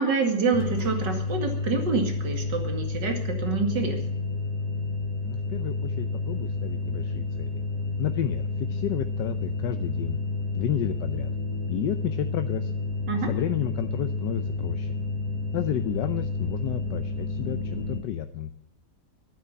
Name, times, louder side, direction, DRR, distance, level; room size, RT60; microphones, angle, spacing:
voice 1, 0.0-4.0 13.1-13.3, right 4 dB, 80° right, 4 dB, 2.8 m, -27 dB
sound 1, 0.5-18.0, left 3 dB, 35° left, 2.4 m, -30 dB
voice 2, 5.2-7.5 8.0-10.2 10.5-11.3 11.7-12.7 13.3-15.0 15.5-18.5, left 11 dB, 75° left, 9 dB, 1.3 m, -31 dB
12.5 x 9.3 x 9.7 m, 0.82 s
omnidirectional pair, 1.9 m